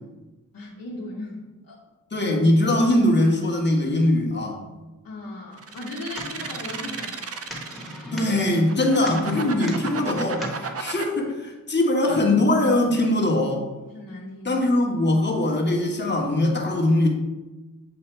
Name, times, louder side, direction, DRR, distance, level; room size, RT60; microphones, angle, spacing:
voice 1, 0.5-1.8 5.0-7.4 13.9-14.6, left 2 dB, 70° left, -5 dB, 1.0 m, -37 dB
voice 2, 2.1-4.6 8.1-13.7 14.4-17.1, left 1 dB, 30° left, 0 dB, 1.3 m, -21 dB
sound 1, 5.6-8.1 8.6-11.0, right 5 dB, 45° right, 0.5 m, -33 dB
sound 2, 5.7-10.7, equal, ahead, 1.4 m, -39 dB
7.9 x 2.7 x 4.4 m, 1.1 s
wide cardioid pair, 80°, 35 cm